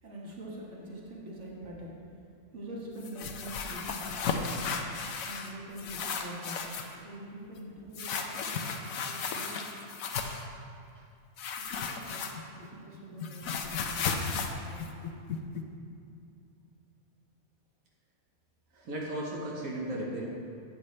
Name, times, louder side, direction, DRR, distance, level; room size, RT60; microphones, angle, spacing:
voice 1, 0.0-1.9 2.5-4.5 5.2-9.6 11.6-15.1, right 1 dB, 60° right, -3 dB, 1.9 m, -45 dB
sound 1, 3.0-5.5 5.8-7.0 7.9-10.5 11.4-12.7 12.9-15.6, left 5 dB, 85° left, 1.2 m, -34 dB
voice 2, 18.7-20.2, right 1 dB, 85° right, -3 dB, 1.6 m, -35 dB
12.0 x 8.3 x 3.2 m, 2.5 s
omnidirectional pair, 1.4 m